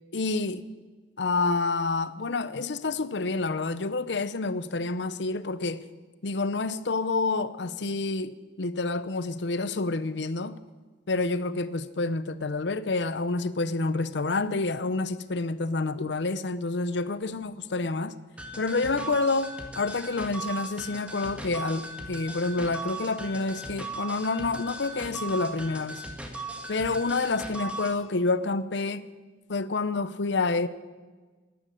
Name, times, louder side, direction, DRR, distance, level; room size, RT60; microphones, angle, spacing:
voice 1, 0.1-0.6 1.2-5.8 6.2-10.6 11.1-18.1 18.6-26.0 26.7-29.0 29.5-30.7, left 3 dB, 75° left, 0.7 m, -28 dB
sound 1, 18.4-28.0, right 2 dB, 5° right, 1.6 m, -38 dB
12.0 x 11.5 x 8.7 m
head